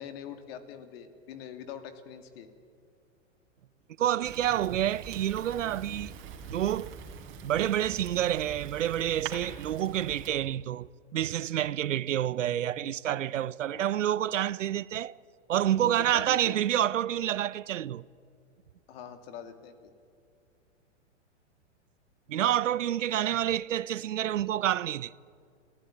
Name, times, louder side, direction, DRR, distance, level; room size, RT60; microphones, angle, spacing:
voice 1, 0.0-2.5 13.7-14.0 15.8-16.6 18.9-19.9, left 8 dB, 55° left, 2.8 m, -43 dB
voice 2, 4.0-6.1 6.5-7.0 7.4-10.9 11.1-15.2 15.5-18.0 22.3-25.1, right 11 dB, 85° right, 0.7 m, -28 dB
Fire, 4.2-10.3, right 6 dB, 35° right, 3.8 m, -44 dB
29.5 x 15.5 x 9.8 m
hypercardioid pair, 120°, 37 cm